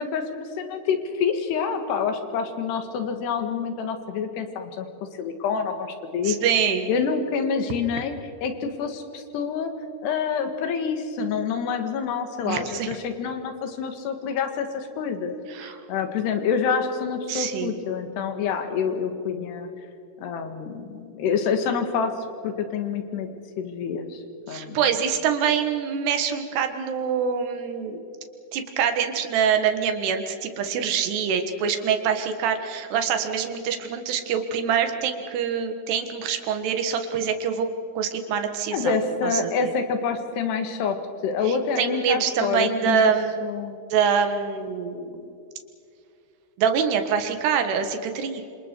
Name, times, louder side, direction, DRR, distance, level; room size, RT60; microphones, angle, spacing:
voice 1, 0.0-4.9 5.2-6.4 6.9-8.1 8.4-9.7 10.0-19.7 20.2-22.1 22.4-23.3 23.6-24.8 38.7-41.0 41.2-43.1 43.4-43.8, left 6 dB, 85° left, 7 dB, 3.8 m, -27 dB
voice 2, 6.2-6.9 12.4-12.9 15.5-15.8 17.3-17.7 24.5-28.0 28.5-37.7 38.0-38.9 39.2-39.7 41.5-43.4 43.9-45.2 46.6-48.4, right 7 dB, 85° right, 7 dB, 3.6 m, -25 dB
27.0 x 27.0 x 4.6 m, 2.6 s
omnidirectional pair, 4.6 m